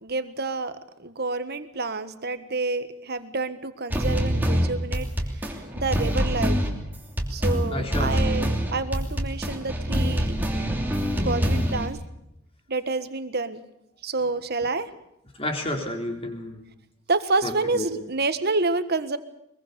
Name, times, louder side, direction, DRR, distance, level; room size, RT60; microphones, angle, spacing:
voice 1, 0.0-5.1 5.3-5.5 5.8-6.6 7.3-10.3 11.2-12.0 12.7-13.6 14.0-14.9 17.1-19.2, right 3 dB, 50° right, 11 dB, 1.6 m, -28 dB
sound 1, 3.9-11.9, equal, 10° right, 3.1 m, -25 dB
voice 2, 7.7-8.4 15.4-16.6 17.4-17.9, left 1 dB, 25° left, 3 dB, 4.0 m, -31 dB
23.0 x 22.0 x 7.0 m, 0.80 s
head